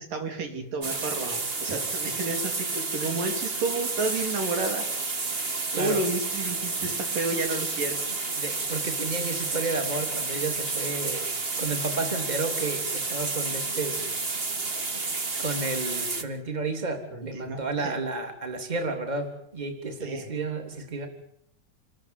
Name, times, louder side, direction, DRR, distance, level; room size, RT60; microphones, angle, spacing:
voice 1, 0.0-4.9 5.7-8.0 17.1-18.0 20.0-20.3, right 3 dB, 80° right, 5 dB, 5.0 m, -31 dB
sound 1, 0.8-16.2, right 3 dB, 40° right, 0.8 m, -30 dB
voice 2, 8.3-11.3 11.6-14.1 15.4-21.1, right 3 dB, 15° right, 5 dB, 3.1 m, -32 dB
28.5 x 14.0 x 9.6 m, 0.73 s
omnidirectional pair, 3.8 m